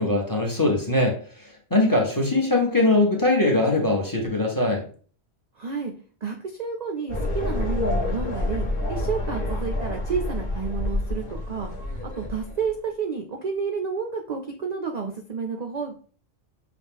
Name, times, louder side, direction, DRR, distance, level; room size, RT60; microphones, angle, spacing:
voice 1, 0.0-4.8, left 2 dB, 20° left, 1 dB, 0.8 m, -22 dB
voice 2, 5.6-5.9 6.2-11.7 12.0-15.9, right 5 dB, 55° right, 3 dB, 0.4 m, -30 dB
sound 1, 7.1-12.7, left 1 dB, 50° left, 1.2 m, -28 dB
5.8 x 2.3 x 3.6 m, 0.42 s
omnidirectional pair, 1.3 m